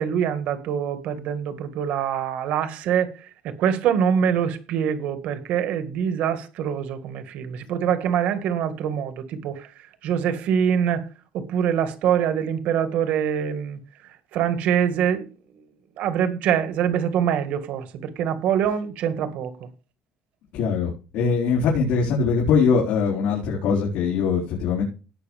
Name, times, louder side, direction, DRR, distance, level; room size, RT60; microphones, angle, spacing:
voice 1, 0.0-9.7 10.0-11.1 11.3-13.8 14.3-15.3 16.0-19.7, right 8 dB, 55° right, 1.7 m, -24 dB
voice 2, 20.5-24.8, left 5 dB, 75° left, 4.3 m, -22 dB
17.5 x 6.3 x 3.5 m
cardioid pair, 175°, 3 cm